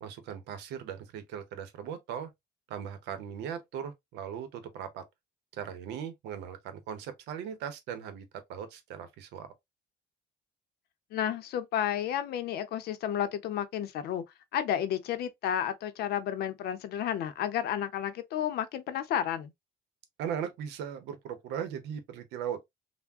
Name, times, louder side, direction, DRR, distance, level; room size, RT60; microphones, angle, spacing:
voice 1, 0.0-2.3 2.7-5.0 5.5-9.5 20.2-22.8, right 8 dB, 85° right, 0.7 m, -38 dB
voice 2, 11.1-14.2 14.5-19.5, left 10 dB, 70° left, 0.6 m, -31 dB
3.4 x 2.1 x 2.4 m
cardioid pair, 110°, 17 cm